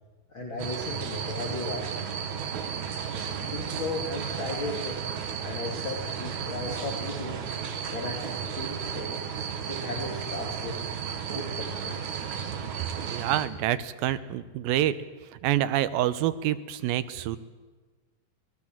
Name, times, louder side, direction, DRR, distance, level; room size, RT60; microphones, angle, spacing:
voice 1, 0.3-2.4 3.1-5.0 5.4-7.4 7.9-8.2 8.5-9.2 9.7-10.8 11.3-12.0, left 2 dB, 35° left, -1 dB, 3.0 m, -35 dB
sound 1, 0.6-13.5, right 7 dB, 60° right, 2.7 m, -34 dB
voice 2, 13.1-14.9 15.4-17.4, right 12 dB, 90° right, 13 dB, 2.7 m, -27 dB
25.5 x 19.0 x 7.4 m, 1.3 s
omnidirectional pair, 4.0 m